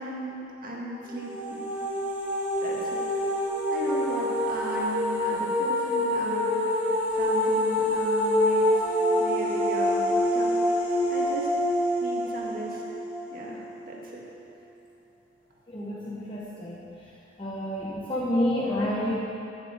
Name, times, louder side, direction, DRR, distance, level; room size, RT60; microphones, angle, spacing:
voice 1, 0.0-1.8 2.6-3.1 3.7-10.6 11.1-11.5 12.0-12.8 13.3-14.2, right 1 dB, 50° right, -3 dB, 1.9 m, -37 dB
sound 1, 1.1-13.9, left 1 dB, 10° right, 2.0 m, -26 dB
voice 2, 15.7-16.9 17.4-19.2, left 1 dB, 25° left, -6 dB, 1.0 m, -29 dB
8.1 x 7.7 x 7.8 m, 2.7 s
head